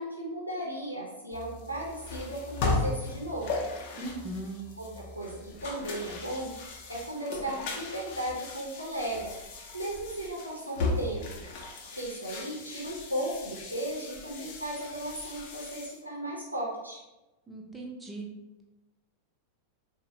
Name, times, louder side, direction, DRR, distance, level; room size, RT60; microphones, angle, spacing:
voice 1, 0.0-3.6 4.8-6.5 6.9-9.3 9.7-11.4 11.9-17.0, right 1 dB, 85° right, -4 dB, 0.6 m, -36 dB
sound 1, 1.3-16.0, left 3 dB, 45° left, 0.6 m, -37 dB
voice 2, 4.0-4.7 17.5-18.3, right 2 dB, 10° right, 0 dB, 0.6 m, -38 dB
3.8 x 2.0 x 2.8 m, 1.0 s
figure-of-eight pair, 90°, 0 cm